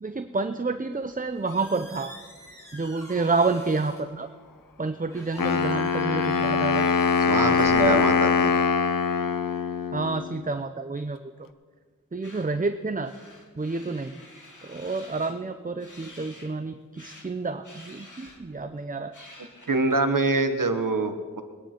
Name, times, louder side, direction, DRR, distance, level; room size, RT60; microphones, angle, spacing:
voice 1, 0.0-2.1 2.7-4.3 4.8-6.9 7.4-8.1 9.9-11.5 12.1-13.1 13.5-14.1 14.6-19.1, right 3 dB, 25° right, 9 dB, 0.6 m, -29 dB
Squeak, 0.9-8.4, left 1 dB, 10° left, 4.1 m, -46 dB
Wind instrument woodwind instrument, 5.4-10.3, left 5 dB, 85° left, 0.6 m, -23 dB
voice 2, 7.3-8.5 19.7-21.4, right 3 dB, 75° right, 8 dB, 1.2 m, -25 dB
sound 1, 12.2-12.5 13.0-15.3 15.8-16.5 17.0-17.3 17.6-18.6 19.1-20.0, left 1 dB, 65° left, 2.3 m, -49 dB
22.0 x 10.0 x 4.4 m, 1.5 s
wide cardioid pair, 55°, 33 cm